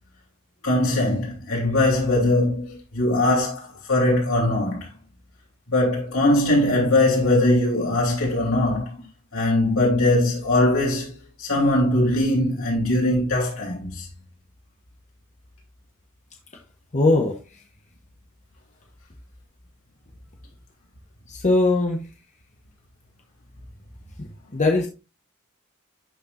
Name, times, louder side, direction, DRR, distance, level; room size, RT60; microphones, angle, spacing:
voice 1, 0.6-4.9 5.7-9.0 9.3-11.1 11.4-14.0, left 1 dB, 85° left, 3.3 m, -21 dB
voice 2, 16.9-17.4 21.3-22.0 24.2-24.9, left 2 dB, 35° left, 0.9 m, -20 dB
11.5 x 4.4 x 2.5 m
head